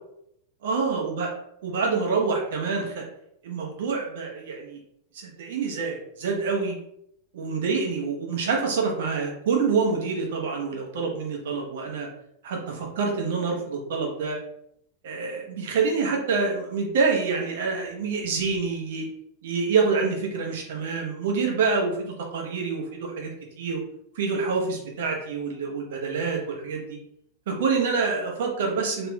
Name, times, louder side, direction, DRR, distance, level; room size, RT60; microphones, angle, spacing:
voice 1, 0.6-1.3 1.6-3.0 3.4-4.8 5.1-6.8 7.3-12.1 12.4-14.4 15.0-19.1 19.4-23.3 23.6-23.8 24.1-27.0 27.5-29.1, right 4 dB, 55° right, 0 dB, 0.8 m, -26 dB
3.2 x 2.9 x 2.2 m, 0.74 s
figure-of-eight pair, 90°, 0 cm